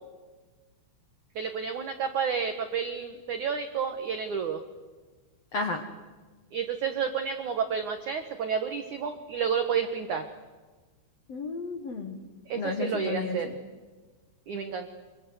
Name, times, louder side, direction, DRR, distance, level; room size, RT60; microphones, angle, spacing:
voice 1, 1.3-4.6 6.5-10.3 12.5-13.5 14.5-14.9, right 7 dB, 90° right, 7 dB, 1.7 m, -30 dB
voice 2, 11.3-12.2 12.5-13.4, left 4 dB, 90° left, 5 dB, 1.4 m, -32 dB
26.5 x 25.5 x 8.1 m, 1.3 s
omnidirectional pair, 5.7 m